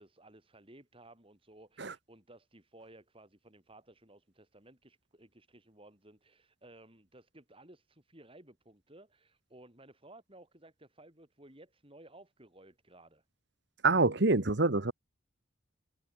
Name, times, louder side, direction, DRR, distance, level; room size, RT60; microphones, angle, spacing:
voice 1, 0.0-13.2, right 1 dB, 30° right, 7.6 m, -57 dB
voice 2, 13.8-14.9, right 3 dB, 65° right, 1.4 m, -26 dB
head